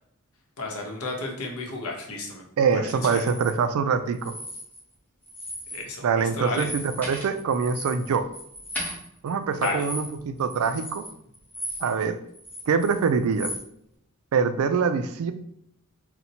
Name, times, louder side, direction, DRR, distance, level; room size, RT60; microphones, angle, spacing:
voice 1, 0.6-2.4 2.7-3.3 5.7-6.7 9.6-9.9, left 2 dB, 85° left, 1 dB, 0.8 m, -32 dB
voice 2, 2.6-4.3 6.0-8.3 9.2-11.0 11.8-12.2 12.7-13.5 14.3-15.3, right 5 dB, 75° right, 10 dB, 0.3 m, -24 dB
sound 1, 2.9-3.5 4.1-4.9 5.2-5.9 6.2-12.0 12.3-13.6, left 1 dB, 10° left, 1.0 m, -37 dB
4.0 x 2.1 x 2.8 m, 0.75 s
head